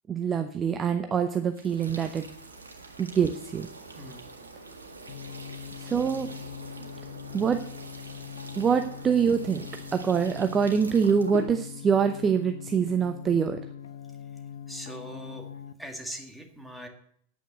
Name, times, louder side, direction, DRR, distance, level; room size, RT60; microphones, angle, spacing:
voice 1, 0.1-2.2 3.0-3.7 5.8-6.3 7.3-7.6 8.6-13.6, right 6 dB, 20° right, 7 dB, 0.7 m, -25 dB
sound 1, 1.5-11.5, right 3 dB, 75° right, 1.8 m, -44 dB
sound 2, 5.1-15.7, left 8 dB, 65° left, 0.8 m, -42 dB
voice 2, 14.7-15.5 15.8-16.9, equal, 5° right, 3 dB, 2.0 m, -41 dB
9.4 x 9.1 x 6.6 m, 0.66 s
figure-of-eight pair, 90°, 0 cm